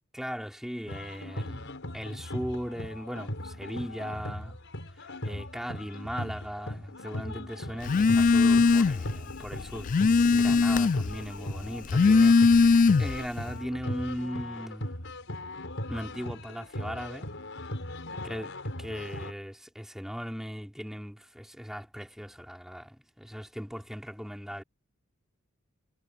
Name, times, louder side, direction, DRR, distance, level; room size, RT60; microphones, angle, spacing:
voice 1, 0.1-4.6 5.2-15.0 15.9-17.3 18.2-18.5 18.8-24.6, equal, ahead, 4.1 m, -38 dB
sound 1, 0.9-19.3, left 1 dB, 60° left, 6.3 m, -38 dB
Telephone, 7.8-9.1 9.5-11.1 11.8-13.3, left 4 dB, 40° left, 0.3 m, -20 dB
head